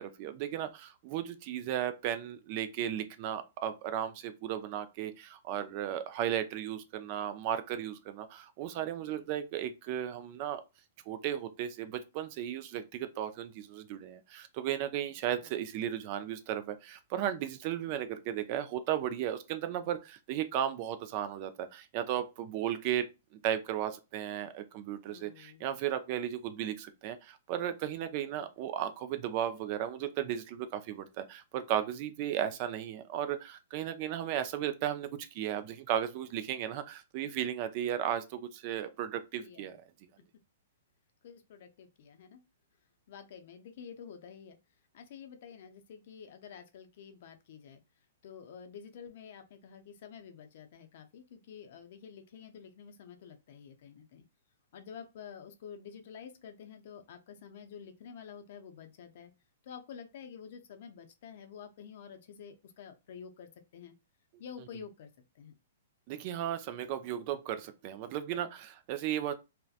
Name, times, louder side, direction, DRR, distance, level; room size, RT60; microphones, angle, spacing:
voice 1, 0.0-10.6 11.1-23.1 23.4-39.7 66.1-69.3, right 10 dB, 35° right, 0.3 m, -35 dB
voice 2, 9.1-9.6 15.3-15.5 25.0-25.6 28.3-28.7 39.4-39.8 41.2-42.4 43.1-44.6 44.9-47.8 48.2-54.2 54.7-59.3 59.6-63.9 64.4-65.5, left 7 dB, 55° left, 0.5 m, -49 dB
2.6 x 2.1 x 2.3 m
hypercardioid pair, 155°, 0 cm